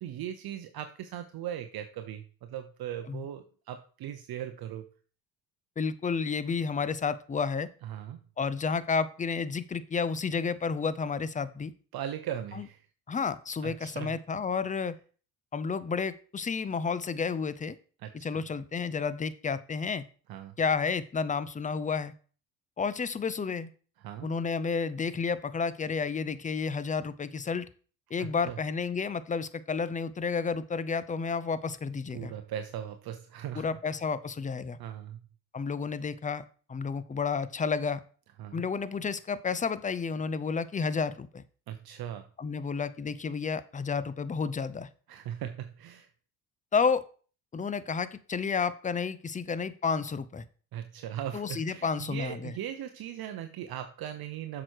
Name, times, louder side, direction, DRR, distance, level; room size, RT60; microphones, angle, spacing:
voice 1, 0.0-4.9 7.8-8.2 11.9-12.9 13.6-14.1 18.0-18.4 20.3-20.5 24.0-24.3 28.2-28.6 32.1-33.8 34.8-35.2 38.4-38.7 41.7-42.2 45.1-46.1 50.7-54.6, right 10 dB, 50° right, 7 dB, 0.9 m, -39 dB
voice 2, 5.8-7.7 8.4-11.7 12.5-12.7 13.1-15.0 15.5-17.8 18.2-20.0 20.6-22.1 22.8-23.7 24.2-27.7 28.1-32.3 33.5-34.8 35.5-36.4 36.7-38.0 38.5-41.4 42.4-44.9 46.7-47.0 47.5-50.4 51.3-52.5, left 5 dB, 15° left, 16 dB, 0.6 m, -31 dB
7.6 x 6.2 x 4.6 m, 0.40 s
supercardioid pair, 80°, 48 cm